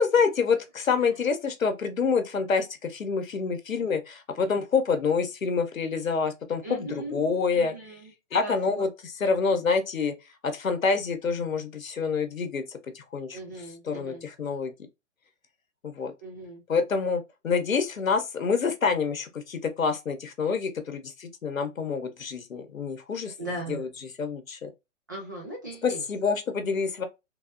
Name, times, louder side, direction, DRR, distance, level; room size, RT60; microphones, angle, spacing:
voice 1, 0.0-7.7 8.3-8.9 9.2-10.1 10.4-13.4 13.9-14.7 15.8-16.1 16.7-23.3 23.7-23.9 24.2-24.7 25.8-27.0, left 5 dB, 85° left, 0.8 m, -27 dB
voice 2, 6.6-7.2 7.5-8.9 13.3-14.3 16.2-16.6 23.4-23.8 25.1-26.0, right 2 dB, 15° right, 0.3 m, -38 dB
3.4 x 2.0 x 2.4 m
figure-of-eight pair, 125°, 40 cm